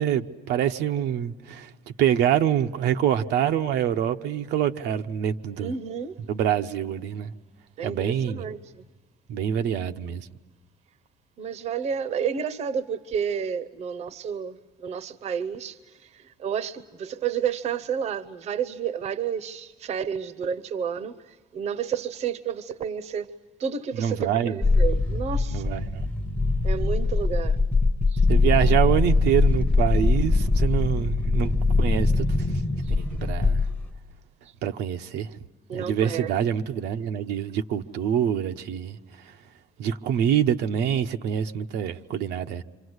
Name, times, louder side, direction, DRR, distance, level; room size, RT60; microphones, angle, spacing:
voice 1, 0.0-1.7 2.0-5.7 6.3-7.3 7.8-8.5 9.3-10.3 23.9-24.6 25.5-26.1 28.3-32.3 33.0-33.6 34.6-35.3 35.7-39.0 39.8-42.6, right 9 dB, 80° right, 0.9 m, -25 dB
voice 2, 5.6-6.2 7.8-8.6 11.4-15.8 16.2-23.3 23.6-25.6 26.6-27.6 28.1-28.2 35.7-36.3, right 7 dB, 40° right, 0.8 m, -30 dB
sound 1, 24.6-34.0, left 3 dB, 10° left, 0.9 m, -22 dB
28.0 x 26.0 x 8.0 m
cardioid pair, 180°, 17 cm